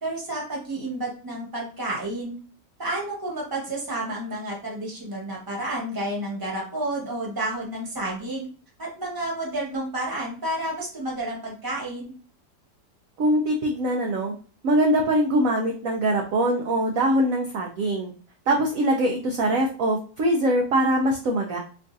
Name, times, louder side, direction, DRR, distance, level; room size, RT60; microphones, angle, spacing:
voice 1, 0.0-2.4 2.8-8.5 8.8-12.1, right 1 dB, 15° right, -3 dB, 1.0 m, -30 dB
voice 2, 13.2-14.3 14.6-18.1 18.5-21.6, right 1 dB, 65° right, 1 dB, 0.8 m, -22 dB
4.5 x 2.4 x 2.6 m, 0.39 s
omnidirectional pair, 1.9 m